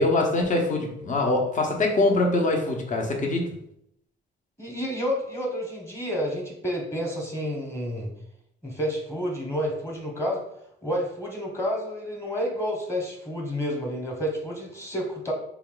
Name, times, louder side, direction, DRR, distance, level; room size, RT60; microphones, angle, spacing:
voice 1, 0.0-3.5, left 2 dB, 40° left, 1 dB, 1.0 m, -23 dB
voice 2, 4.6-8.1 8.6-10.4 10.8-15.3, equal, 15° left, -1 dB, 1.2 m, -30 dB
3.9 x 2.3 x 3.9 m, 0.76 s
cardioid pair, 90°, 20 cm